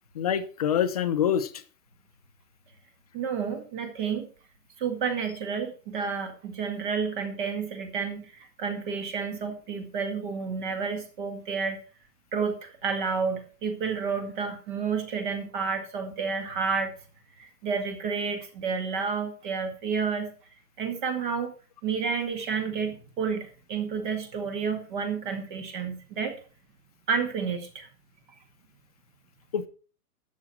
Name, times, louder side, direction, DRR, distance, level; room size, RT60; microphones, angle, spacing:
voice 1, 0.1-1.5 29.5-29.7, left 9 dB, 25° left, 0.6 m, -25 dB
voice 2, 3.1-4.3 4.8-11.8 12.3-16.9 17.4-20.3 20.8-21.5 21.8-26.4 27.1-27.9, right 5 dB, 30° right, 2.0 m, -30 dB
11.0 x 7.4 x 6.0 m
hypercardioid pair, 170°, 46 cm